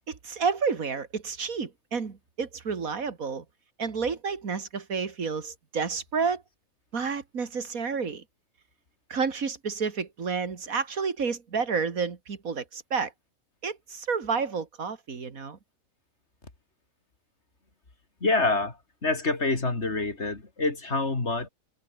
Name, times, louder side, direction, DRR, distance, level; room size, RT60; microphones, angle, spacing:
voice 1, 0.1-3.4 3.8-6.4 6.9-8.2 9.1-13.1 13.6-15.6, right 5 dB, 85° right, 2.5 m, -30 dB
voice 2, 18.2-21.5, left 3 dB, 50° left, 3.5 m, -27 dB
omnidirectional pair, 1.4 m